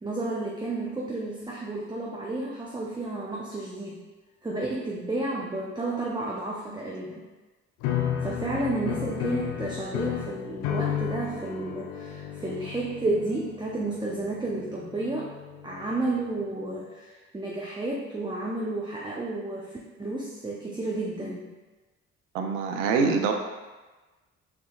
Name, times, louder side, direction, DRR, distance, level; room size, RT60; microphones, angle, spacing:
voice 1, 0.0-4.1 4.4-7.2 8.2-15.3 15.6-21.5, right 2 dB, 10° right, -3 dB, 0.6 m, -31 dB
sound 1, 7.8-16.1, left 9 dB, 85° left, 0.5 m, -33 dB
voice 2, 22.3-23.3, right 5 dB, 80° right, 4 dB, 0.6 m, -24 dB
4.6 x 4.1 x 2.3 m, 1.2 s
hypercardioid pair, 50°, 37 cm